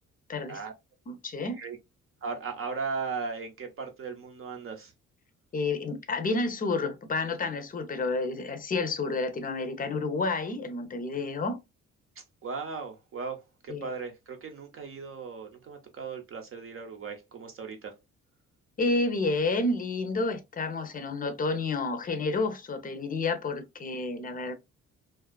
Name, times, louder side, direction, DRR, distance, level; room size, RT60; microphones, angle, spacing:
voice 1, 1.1-1.6 5.5-11.6 13.7-13.9 18.8-24.5, left 3 dB, 30° left, 0.5 m, -30 dB
voice 2, 2.2-4.9 12.2-17.9, right 5 dB, 45° right, 0.7 m, -37 dB
2.5 x 2.3 x 2.2 m
cardioid pair, 90°, 30 cm